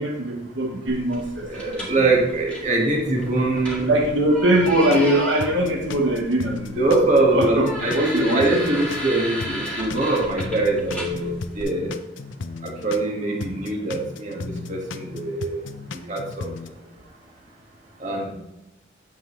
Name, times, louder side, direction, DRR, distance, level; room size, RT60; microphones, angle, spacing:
voice 1, 0.0-1.8 3.9-6.8 7.3-7.7 7.9-8.4, right 1 dB, 75° right, 0 dB, 1.2 m, -21 dB
sound 1, 0.9-11.6, equal, 5° left, 1.7 m, -35 dB
voice 2, 1.4-3.9 6.8-11.9 12.6-15.6 15.9-16.5 18.0-18.3, right 2 dB, 40° right, -1 dB, 1.7 m, -23 dB
sound 2, 4.6-5.1 5.4-9.1 9.4-13.1 13.4-16.7, left 4 dB, 85° left, 0.6 m, -36 dB
9.5 x 7.3 x 3.2 m, 0.91 s
head